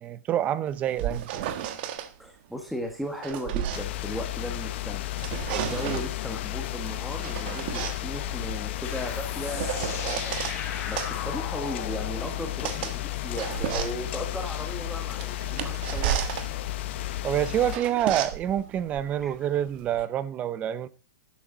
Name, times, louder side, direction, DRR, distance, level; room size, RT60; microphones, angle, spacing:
voice 1, 0.0-1.3 17.2-20.9, right 10 dB, 15° right, 0.6 m, -27 dB
sound 1, 0.7-2.1 2.9-4.7 5.0-6.2 6.9-10.6 11.0-20.0, right 11 dB, 35° right, 1.5 m, -34 dB
voice 2, 2.2-5.0 5.5-10.4 10.9-16.2 19.2-19.5, equal, ahead, 1.5 m, -36 dB
sound 2, 3.7-17.8, left 15 dB, 40° left, 1.2 m, -33 dB
sound 3, 8.8-14.1, left 7 dB, 25° left, 4.9 m, -38 dB
13.5 x 11.5 x 3.9 m
hypercardioid pair, 165°, 9 cm